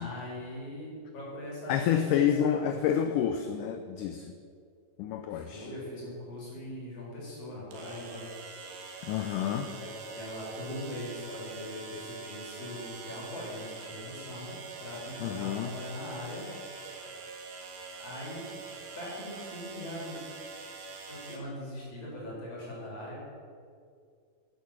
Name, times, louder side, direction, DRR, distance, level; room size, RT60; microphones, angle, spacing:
voice 1, 0.0-2.6 5.3-8.2 8.8-9.0 9.7-17.0 18.0-18.5 19.0-20.2 21.1-23.2, left 1 dB, 40° left, -5 dB, 5.4 m, -41 dB
voice 2, 1.7-4.4 5.0-5.7 9.0-9.7 15.2-15.7, left 9 dB, 80° left, 7 dB, 1.9 m, -29 dB
sound 1, 5.7-5.8 7.7-21.4, right 4 dB, 70° right, 3.3 m, -44 dB
11.5 x 10.5 x 7.4 m, 2.2 s
omnidirectional pair, 4.3 m